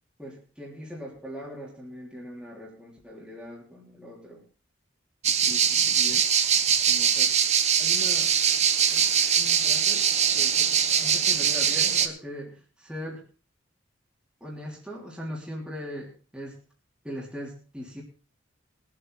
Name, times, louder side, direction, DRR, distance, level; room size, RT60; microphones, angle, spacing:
voice 1, 0.2-4.4 5.4-6.3 6.9-7.4 7.8-8.4 8.9-13.2 14.4-16.6 17.0-18.0, equal, 5° right, -4 dB, 3.1 m, -40 dB
sound 1, 5.2-12.1, right 8 dB, 35° right, 1.0 m, -22 dB
21.5 x 7.9 x 4.0 m, 0.36 s
head